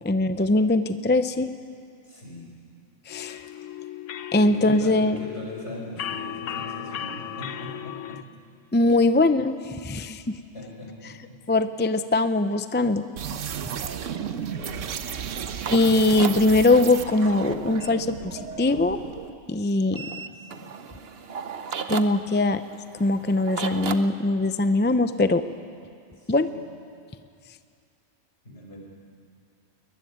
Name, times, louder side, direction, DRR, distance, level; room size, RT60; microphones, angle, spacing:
voice 1, 0.0-1.5 3.1-3.4 4.3-5.2 8.7-10.4 11.5-13.0 15.7-19.0 19.5-20.1 21.9-22.6 23.0-25.4 26.3-26.5, left 2 dB, 15° left, 10 dB, 0.4 m, -21 dB
voice 2, 2.0-2.5 4.4-8.2 10.5-11.4 14.0-15.0 20.0-20.7 26.2-26.6 28.4-28.8, left 1 dB, 60° left, -1 dB, 5.6 m, -41 dB
sound 1, 3.1-8.2, left 10 dB, 80° left, 1.1 m, -36 dB
sound 2, 13.2-19.3, right 8 dB, 85° right, 1.2 m, -34 dB
sound 3, 14.9-17.9 19.9-24.0, right 6 dB, 55° right, 1.1 m, -36 dB
22.5 x 20.5 x 9.5 m, 2.4 s
omnidirectional pair, 1.3 m